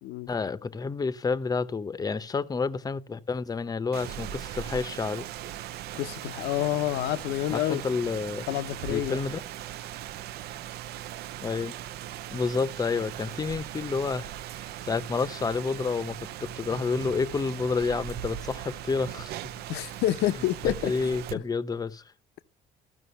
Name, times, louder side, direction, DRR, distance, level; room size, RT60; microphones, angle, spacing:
voice 1, 0.3-5.3 7.5-8.5 8.9-9.4 11.4-11.7 12.3-19.4 20.6-22.0, left 4 dB, 20° left, 0.7 m, -29 dB
Rain, 3.9-21.3, right 12 dB, 70° right, 0.5 m, -39 dB
voice 2, 5.9-7.8 8.5-9.2 19.7-21.4, left 13 dB, 85° left, 0.7 m, -29 dB
14.5 x 6.0 x 5.6 m
cardioid pair, 110°, 17 cm